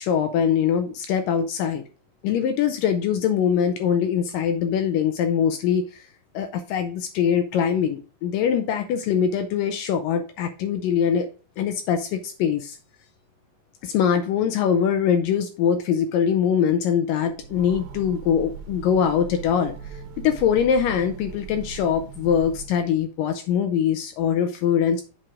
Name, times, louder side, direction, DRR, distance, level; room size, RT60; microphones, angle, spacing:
voice 1, 0.0-1.8 2.2-6.0 6.3-11.3 11.6-12.8 13.8-19.7 20.2-25.0, left 8 dB, 80° left, 7 dB, 2.0 m, -23 dB
Train, 17.2-23.0, right 5 dB, 75° right, 2.7 m, -39 dB
7.7 x 4.5 x 4.8 m, 0.36 s
omnidirectional pair, 4.6 m